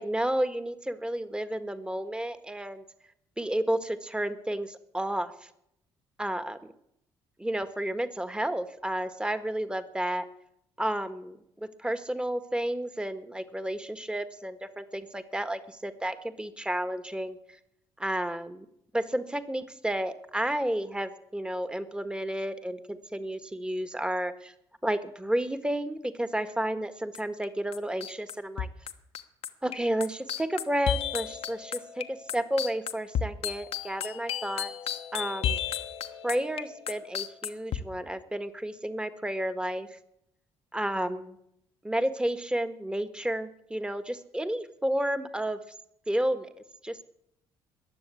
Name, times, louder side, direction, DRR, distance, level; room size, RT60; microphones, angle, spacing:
voice 1, 0.0-2.8 3.4-5.5 6.2-6.6 7.4-10.2 10.8-17.4 18.0-18.7 18.9-24.5 24.8-28.7 29.6-32.0 32.3-34.7 35.1-35.6 36.2-40.0 40.7-41.4 41.8-45.6 46.1-46.5 46.8-47.0, right 1 dB, 10° right, 10 dB, 1.6 m, -31 dB
sound 1, 27.1-27.5 27.7-37.8, left 9 dB, 65° left, 1.2 m, -33 dB
21.5 x 7.2 x 8.5 m, 0.77 s
supercardioid pair, 75°, 11 cm